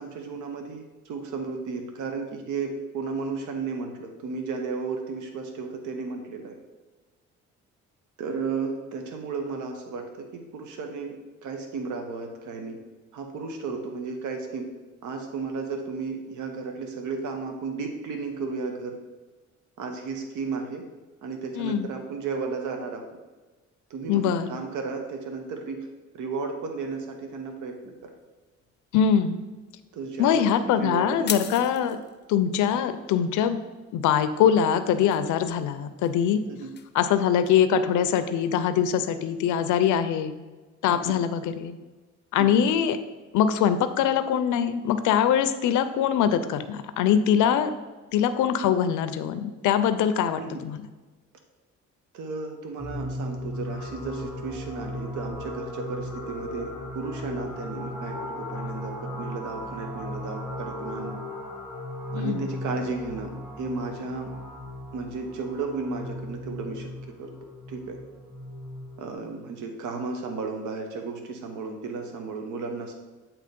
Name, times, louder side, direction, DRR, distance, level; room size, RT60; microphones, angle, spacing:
voice 1, 0.0-6.6 8.2-12.8 13.1-14.7 15.0-19.0 19.8-20.8 21.2-23.1 23.9-25.9 26.1-28.1 29.9-31.5 31.8-31.9 32.7-32.8 36.5-36.7 40.9-41.2 42.4-42.6 50.4-50.6 52.1-61.2 62.1-63.3 63.6-64.3 64.9-66.9 67.2-67.3 67.7-68.0 69.0-72.9, right 4 dB, 80° right, 4 dB, 0.9 m, -34 dB
voice 2, 21.6-21.9 24.1-24.6 28.9-29.4 30.2-32.0 32.3-33.6 33.9-36.4 36.9-40.4 40.8-41.7 42.3-43.0 43.3-47.7 48.1-50.8 62.1-62.5, left 8 dB, 80° left, 10 dB, 0.5 m, -23 dB
sound 1, 26.8-37.5, left 7 dB, 35° left, 0.5 m, -43 dB
sound 2, 52.8-69.1, left 1 dB, 5° right, 1.5 m, -36 dB
7.8 x 3.0 x 5.2 m, 1.2 s
cardioid pair, 90°, 30 cm